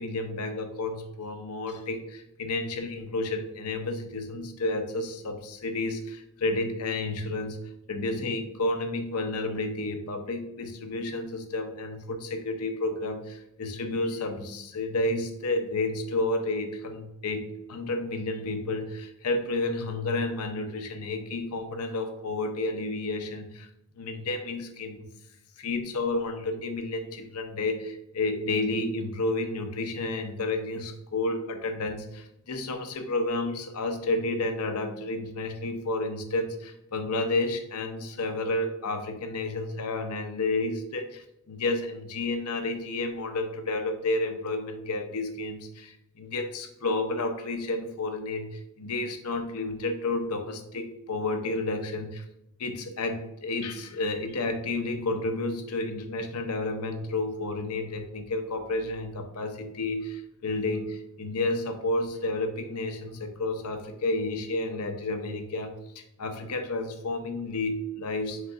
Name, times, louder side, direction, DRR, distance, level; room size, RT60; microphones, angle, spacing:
voice 1, 0.0-23.7 24.0-25.1 25.6-52.2 52.6-68.4, left 2 dB, 85° left, 6 dB, 0.6 m, -31 dB
5.0 x 3.6 x 2.4 m, 0.86 s
head